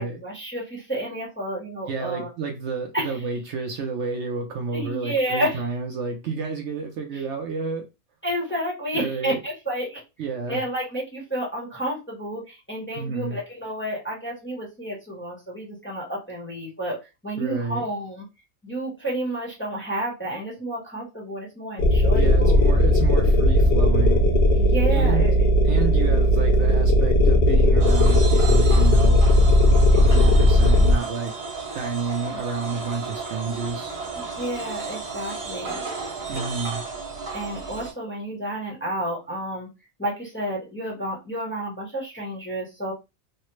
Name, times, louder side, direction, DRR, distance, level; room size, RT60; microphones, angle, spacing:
voice 1, 0.0-2.3 2.9-3.2 4.7-5.7 7.1-7.2 8.2-10.0 10.5-17.0 17.2-18.2 18.6-22.6 24.5-25.4 29.9-30.4 34.1-35.8 37.3-39.7 40.0-42.9, right 1 dB, 10° left, 0.9 m, -30 dB
voice 2, 1.9-7.8 8.9-9.4 10.2-10.6 12.9-13.4 17.4-17.8 22.1-24.2 24.9-25.3 25.6-29.3 29.9-31.3 31.7-34.0 36.3-36.8, right 4 dB, 65° right, 0.8 m, -30 dB
sound 1, 21.8-31.0, left 1 dB, 60° left, 0.7 m, -17 dB
sound 2, 27.8-37.9, right 4 dB, 50° right, 1.3 m, -33 dB
3.1 x 2.0 x 3.0 m
omnidirectional pair, 1.4 m